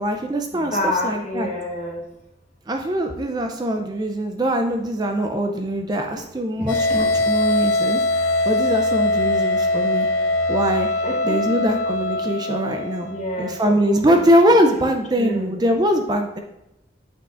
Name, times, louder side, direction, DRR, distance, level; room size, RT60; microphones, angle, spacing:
voice 1, 0.0-1.5 2.7-8.0 8.4-10.1 10.5-10.9 11.2-13.1 13.4-16.4, equal, 20° right, 4 dB, 0.4 m, -22 dB
voice 2, 0.5-2.0 6.1-6.2 6.6-7.2 11.0-11.4 13.0-14.9 15.2-15.5, left 1 dB, 40° left, -2 dB, 1.4 m, -29 dB
sound 1, 6.7-13.6, left 2 dB, 90° left, 0.6 m, -22 dB
8.2 x 6.1 x 2.5 m, 0.87 s
head